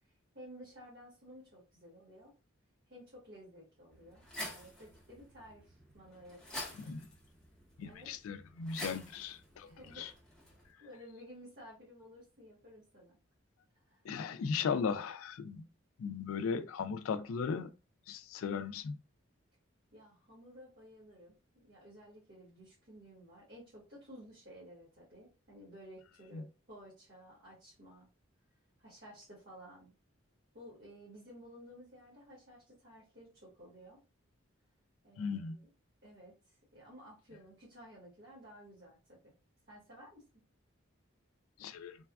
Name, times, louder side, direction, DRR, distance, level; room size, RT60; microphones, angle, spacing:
voice 1, 0.3-2.3 2.9-6.8 7.8-8.1 9.6-10.1 10.8-13.2 13.7-14.0 19.9-28.1 28.8-29.9 30.5-34.0 35.0-35.6 36.0-39.2 39.7-40.2, equal, 50° right, 1.3 m, -54 dB
sound 1, 3.9-10.7, left 1 dB, 5° left, 0.7 m, -48 dB
voice 2, 7.8-10.1 14.0-15.6 16.0-17.7 18.1-19.0 26.3-26.4 35.2-35.6 41.6-42.0, left 5 dB, 85° left, 0.3 m, -37 dB
3.3 x 2.2 x 2.3 m
head